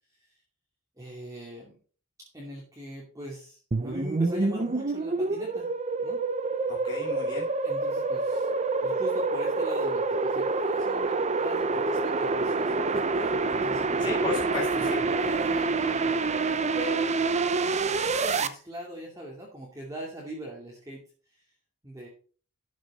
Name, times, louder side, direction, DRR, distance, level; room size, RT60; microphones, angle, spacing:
voice 1, 1.0-1.8 2.3-5.7 6.0-6.3 7.6-8.5 8.8-14.3 14.8-17.1 17.5-21.0 21.3-21.4 21.8-22.1, equal, 15° right, -3 dB, 2.5 m, -41 dB
sound 1, 3.7-18.5, right 3 dB, 30° right, 0.7 m, -27 dB
voice 2, 6.7-7.5 14.0-15.0, left 4 dB, 20° left, -6 dB, 2.5 m, -33 dB
12.5 x 6.5 x 4.1 m, 0.40 s
head